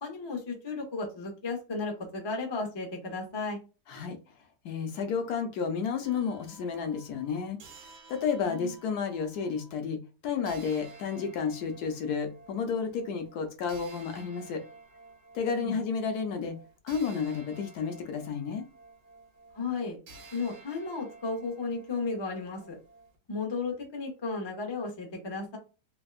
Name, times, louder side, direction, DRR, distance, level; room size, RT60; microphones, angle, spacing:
voice 1, 0.0-3.6 8.4-8.7 15.6-15.8 19.5-20.0 20.3-22.7 23.3-25.6, left 4 dB, 45° left, 2 dB, 0.3 m, -34 dB
voice 2, 4.6-7.6 8.1-14.6 15.3-16.5 16.8-18.7, left 6 dB, 75° left, 6 dB, 1.1 m, -31 dB
sound 1, 6.0-9.8 10.5-23.2, right 3 dB, 85° right, 1.4 m, -53 dB
3.4 x 2.2 x 2.3 m, 0.31 s
omnidirectional pair, 1.8 m